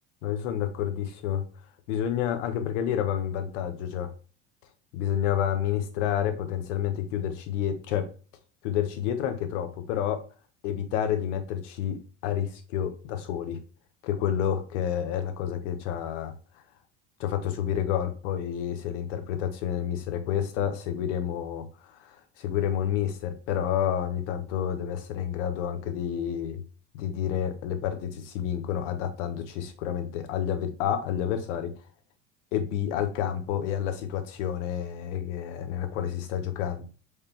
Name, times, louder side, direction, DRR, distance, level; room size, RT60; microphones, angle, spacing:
voice 1, 0.2-1.4 1.9-4.1 4.9-8.1 8.6-10.2 10.6-13.6 14.0-16.3 17.2-26.6 26.9-31.7 32.5-36.8, left 9 dB, 75° left, 0.9 m, -29 dB
4.9 x 3.0 x 3.2 m
hypercardioid pair, 75°, 37 cm